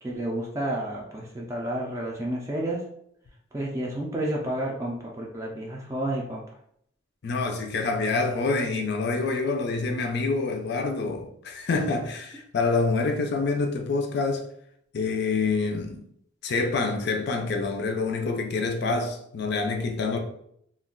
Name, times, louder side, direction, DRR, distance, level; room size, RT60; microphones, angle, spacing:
voice 1, 0.0-2.8 3.5-6.4, right 1 dB, 15° right, 0.4 m, -30 dB
voice 2, 7.2-14.4 14.9-16.0 16.4-20.2, left 3 dB, 60° left, 0.4 m, -26 dB
2.4 x 2.2 x 3.6 m
head